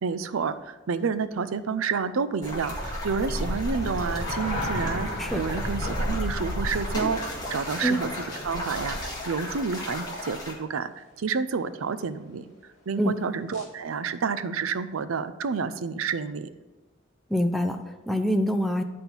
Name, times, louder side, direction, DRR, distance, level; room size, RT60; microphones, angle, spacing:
voice 1, 0.0-5.1 5.3-12.5 12.9-16.5, right 5 dB, 85° right, 13 dB, 0.5 m, -29 dB
sound 1, 2.4-10.5, equal, 20° left, 1.8 m, -32 dB
sound 2, 4.2-10.1 13.5-13.7, left 1 dB, 35° left, 2.1 m, -38 dB
voice 2, 17.3-18.8, equal, ahead, 3 dB, 0.5 m, -25 dB
10.5 x 4.3 x 5.4 m, 1.2 s
head